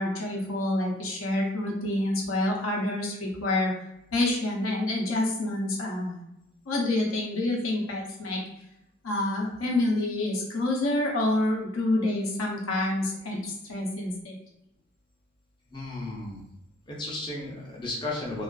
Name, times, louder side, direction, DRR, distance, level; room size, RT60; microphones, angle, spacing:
voice 1, 0.0-3.7 4.1-6.2 6.7-8.4 9.0-14.4, left 1 dB, 70° left, -1 dB, 0.6 m, -27 dB
voice 2, 15.7-16.4 16.9-18.4, left 2 dB, 20° left, -4 dB, 0.5 m, -34 dB
2.3 x 2.3 x 2.2 m, 0.84 s
head